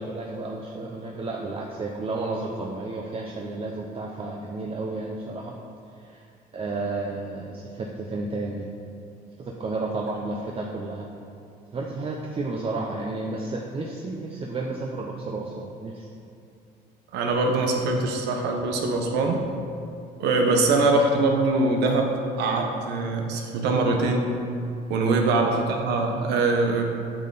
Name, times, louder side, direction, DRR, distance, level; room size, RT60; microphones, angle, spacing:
voice 1, 0.0-5.6 6.0-6.3 6.5-8.7 9.4-11.1 11.7-16.1 25.1-25.3, right 2 dB, 35° right, -1 dB, 0.8 m, -32 dB
voice 2, 17.1-19.4 20.2-24.4 24.9-26.8, right 3 dB, 85° right, 2 dB, 1.2 m, -23 dB
8.8 x 6.7 x 4.1 m, 2.5 s
cardioid pair, 110°, 17 cm